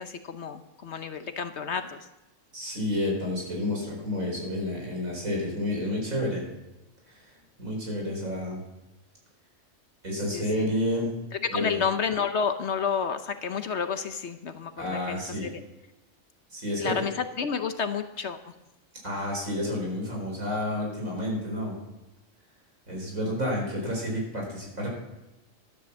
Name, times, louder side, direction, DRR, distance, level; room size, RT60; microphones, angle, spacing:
voice 1, 0.0-2.0 10.3-10.6 11.4-14.7 15.1-15.5 16.8-18.4, left 6 dB, 60° left, 9 dB, 1.0 m, -30 dB
voice 2, 2.5-6.4 7.1-7.3 7.6-8.6 10.0-11.1 11.5-11.8 14.8-15.5 16.5-17.0 19.0-21.7 22.9-24.9, left 1 dB, 85° right, -1 dB, 5.1 m, -30 dB
13.0 x 9.6 x 7.3 m, 1.0 s
omnidirectional pair, 1.4 m